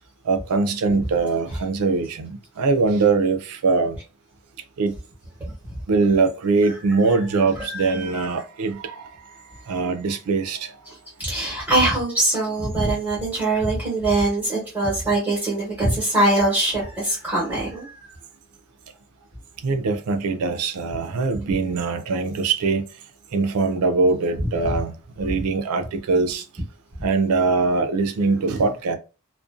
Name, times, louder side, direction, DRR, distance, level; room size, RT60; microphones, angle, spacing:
voice 1, 0.2-4.0 4.8-5.0 5.9-9.3 9.6-10.8 19.6-22.8 23.3-26.4 27.0-29.0, right 4 dB, 85° right, 0.4 m, -22 dB
voice 2, 5.4-5.8 6.9-7.2 7.5-8.4 10.9-18.1 24.4-24.7 25.2-25.4, right 2 dB, 10° right, 1.0 m, -23 dB
2.5 x 2.1 x 2.4 m
head